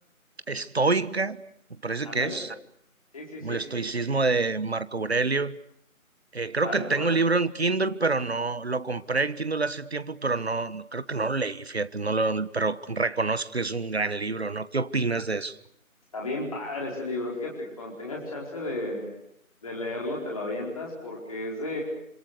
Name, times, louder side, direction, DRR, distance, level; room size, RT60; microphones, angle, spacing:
voice 1, 0.5-1.4 1.8-2.5 3.4-5.6 6.3-15.6, right 3 dB, 45° right, 1.3 m, -27 dB
voice 2, 2.0-2.4 3.1-3.6 6.6-7.1 16.1-19.1 19.6-21.8, left 2 dB, 25° left, 4.6 m, -33 dB
28.5 x 27.0 x 6.7 m
figure-of-eight pair, 175°, 42 cm